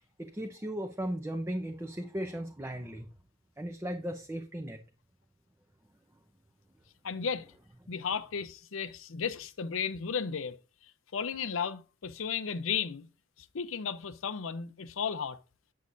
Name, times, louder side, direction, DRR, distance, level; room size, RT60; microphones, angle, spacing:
voice 1, 0.2-3.1 3.6-4.8, right 1 dB, 15° right, 0.6 m, -36 dB
voice 2, 7.0-7.4 7.9-10.6 11.1-13.1 13.5-15.4, left 6 dB, 90° left, 0.6 m, -34 dB
8.4 x 6.4 x 2.6 m
head